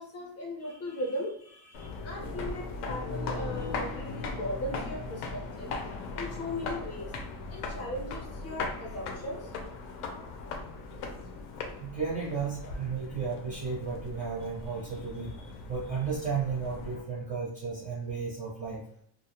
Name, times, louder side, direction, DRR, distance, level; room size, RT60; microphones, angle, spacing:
voice 1, 0.0-5.7 6.1-7.1 7.5-9.5 15.4-15.5, left 1 dB, 30° left, -2 dB, 0.5 m, -38 dB
sound 1, 1.7-17.0, left 3 dB, 80° left, 0.7 m, -38 dB
voice 2, 11.8-15.3 15.7-18.8, right 5 dB, 20° right, -6 dB, 0.4 m, -33 dB
2.3 x 2.0 x 2.8 m, 0.64 s
cardioid pair, 165°, 48 cm